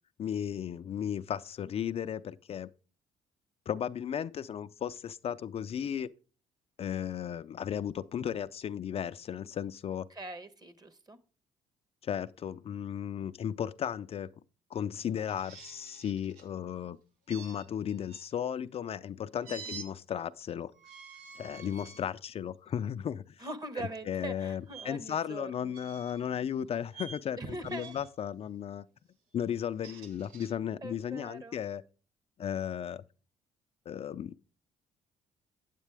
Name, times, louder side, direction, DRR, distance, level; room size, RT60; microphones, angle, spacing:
voice 1, 0.2-2.7 3.7-6.1 6.8-10.1 12.0-14.3 14.7-17.0 17.3-20.7 21.4-23.5 24.1-28.9 29.3-31.8 32.4-33.0 33.9-34.3, left 9 dB, 50° left, 0.4 m, -35 dB
voice 2, 10.1-11.2 19.5-19.8 21.6-21.7 23.4-25.7 27.4-28.0 29.8-30.0 30.8-31.6, right 2 dB, 30° right, 1.2 m, -42 dB
sound 1, 15.3-16.5 17.3-18.3 19.4-19.9 20.7-22.1 22.7-22.9 24.7-24.9 25.7-26.3 26.9-27.2 27.6-28.1 29.6-30.5, right 6 dB, 90° right, 1.8 m, -48 dB
8.7 x 8.3 x 3.4 m
cardioid pair, 80°, 14 cm